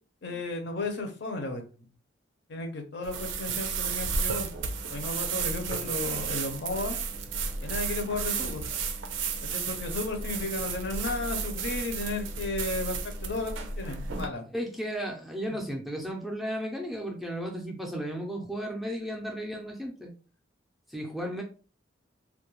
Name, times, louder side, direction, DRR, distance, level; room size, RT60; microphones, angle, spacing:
voice 1, 0.2-1.6 2.5-4.5 4.9-7.0 7.6-8.6 9.4-14.4 15.5-15.6, left 2 dB, 60° left, 4 dB, 0.5 m, -34 dB
sound 1, 3.0-14.3, right 5 dB, 75° right, 0.4 m, -33 dB
voice 2, 14.5-20.1 20.9-21.4, equal, ahead, 0 dB, 0.4 m, -34 dB
2.3 x 2.1 x 2.9 m, 0.37 s
head